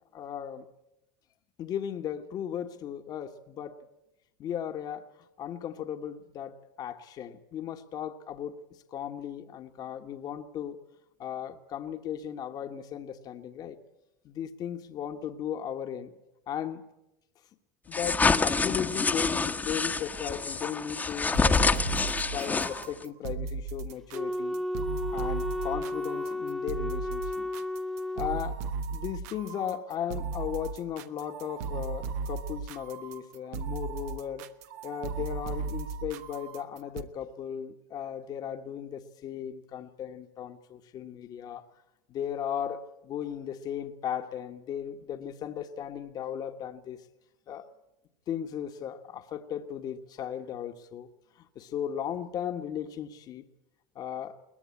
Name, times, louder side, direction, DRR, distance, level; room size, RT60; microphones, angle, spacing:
voice 1, 0.1-0.6 1.6-3.8 4.4-5.0 5.4-8.6 8.9-10.8 11.2-13.8 14.2-16.1 16.5-16.8 17.9-21.8 22.3-24.6 25.1-27.5 28.1-28.6 28.9-34.5 34.8-41.6 42.1-47.0 47.5-47.7 48.3-51.1 51.4-53.4 53.9-54.4, left 9 dB, 45° left, 7 dB, 1.5 m, -36 dB
sound 1, 17.9-23.0, left 4 dB, 20° left, 1.2 m, -27 dB
sound 2, 21.3-37.0, right 4 dB, 70° right, 1.2 m, -36 dB
Wind instrument woodwind instrument, 24.1-28.4, left 1 dB, ahead, 0.7 m, -33 dB
22.5 x 19.0 x 8.5 m, 0.91 s
hypercardioid pair, 95°, 9 cm